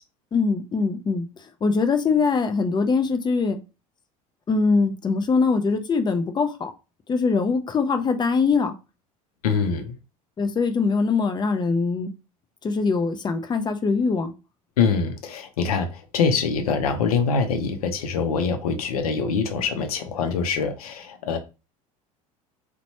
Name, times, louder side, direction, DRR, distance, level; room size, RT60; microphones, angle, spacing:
voice 1, 0.3-1.3 1.6-3.6 4.5-6.7 7.1-8.7 10.4-12.1 12.6-14.3, left 4 dB, 25° left, 8 dB, 0.5 m, -22 dB
voice 2, 9.4-9.9 14.8-21.4, left 5 dB, 85° left, 8 dB, 0.6 m, -24 dB
3.0 x 2.1 x 2.8 m, 0.30 s
hypercardioid pair, 80°, 19 cm